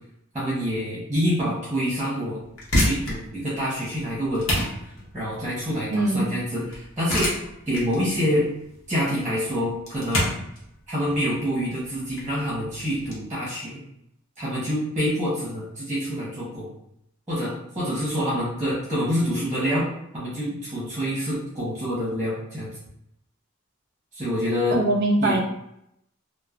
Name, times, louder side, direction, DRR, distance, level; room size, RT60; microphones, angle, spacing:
voice 1, 0.3-2.4 2.7-4.7 5.1-7.3 7.7-8.5 8.9-10.3 10.9-13.8 14.4-16.7 17.3-19.9 20.1-22.7 24.1-24.8 25.2-25.4, equal, 10° right, -8 dB, 0.8 m, -26 dB
sound 1, 2.4-13.2, left 1 dB, 85° left, 0.9 m, -29 dB
voice 2, 5.9-6.3 24.7-25.4, right 2 dB, 50° right, 1 dB, 0.4 m, -22 dB
3.0 x 2.0 x 2.3 m, 0.79 s
head